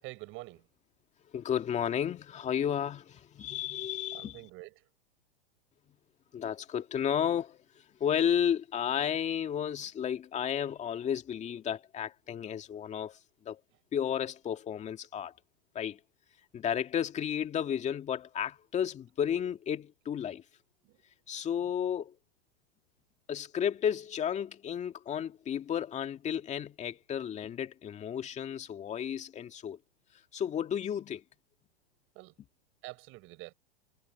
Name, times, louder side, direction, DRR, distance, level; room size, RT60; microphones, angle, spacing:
voice 1, 0.0-0.7 4.1-4.9 20.8-21.0 21.6-21.7 32.1-32.4 32.8-33.5, right 21 dB, 40° right, 6.7 m, -47 dB
voice 2, 1.3-4.4 6.3-13.2 13.4-13.6 13.9-15.3 15.7-16.0 16.5-20.4 21.3-22.1 23.3-29.8 30.3-31.2, left 9 dB, 20° left, 2.2 m, -33 dB
hypercardioid pair, 135°, 33 cm